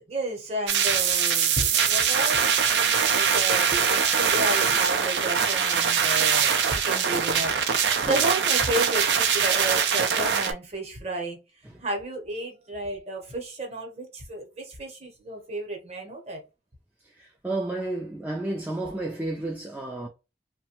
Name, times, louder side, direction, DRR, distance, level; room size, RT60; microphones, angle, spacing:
voice 1, 0.1-11.4 11.8-16.4, right 1 dB, 35° right, 0.8 m, -32 dB
sound 1, 0.7-10.5, right 7 dB, 80° right, 0.4 m, -23 dB
voice 2, 17.0-20.1, right 2 dB, 10° right, 0.3 m, -32 dB
2.7 x 2.1 x 2.9 m
head